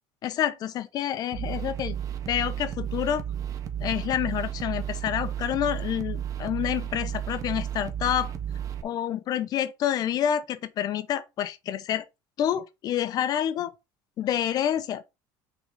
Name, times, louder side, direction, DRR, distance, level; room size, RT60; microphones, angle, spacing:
voice 1, 0.2-2.0 2.3-3.2 3.8-8.3 8.8-12.0 12.4-13.7 14.2-15.0, left 10 dB, 45° left, 0.8 m, -28 dB
sound 1, 1.3-8.8, right 10 dB, 40° right, 1.1 m, -33 dB
6.2 x 3.9 x 5.2 m
cardioid pair, 140°, 9 cm